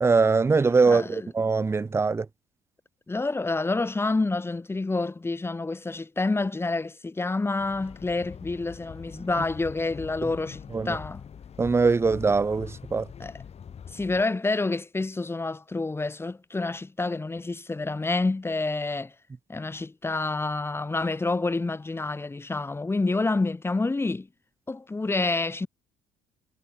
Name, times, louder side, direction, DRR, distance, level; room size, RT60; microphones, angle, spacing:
voice 1, 0.0-2.3 10.7-10.9 11.6-13.0, right 4 dB, 15° right, 0.4 m, -22 dB
voice 2, 0.9-1.3 3.1-11.2 13.2-13.4 13.9-19.1 19.5-24.3 24.7-25.7, left 3 dB, 15° left, 1.0 m, -28 dB
sound 1, 7.6-14.2, left 7 dB, 40° left, 1.3 m, -43 dB
cardioid pair, 110°, 17 cm